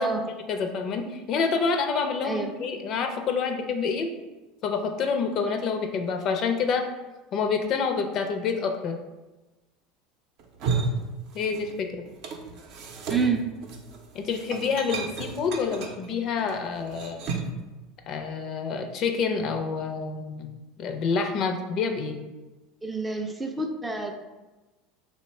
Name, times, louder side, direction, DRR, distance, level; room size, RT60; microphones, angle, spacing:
voice 1, 0.5-4.1 4.6-6.8 7.3-9.0 11.3-12.0 14.1-17.2 18.1-20.5 20.8-22.2, left 5 dB, 50° left, 5 dB, 0.4 m, -27 dB
sound 1, 10.4-11.8 12.1-17.6, right 4 dB, 60° right, 0.5 m, -33 dB
voice 2, 13.1-13.5 22.8-24.1, right 4 dB, 10° right, 4 dB, 0.4 m, -28 dB
3.1 x 2.1 x 4.2 m, 1.1 s
supercardioid pair, 100°, 0 cm